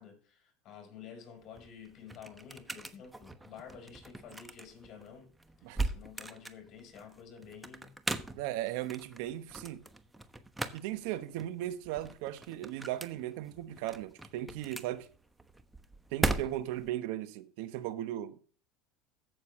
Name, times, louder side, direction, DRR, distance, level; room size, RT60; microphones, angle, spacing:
voice 1, 0.0-5.3 5.6-8.0, left 7 dB, 50° left, 4.9 m, -51 dB
sound 1, 1.4-16.9, right 2 dB, 10° right, 1.1 m, -40 dB
voice 2, 8.3-9.8 10.7-15.1 16.1-18.4, right 13 dB, 70° right, 0.9 m, -37 dB
15.0 x 6.8 x 3.2 m
supercardioid pair, 95°, 0 cm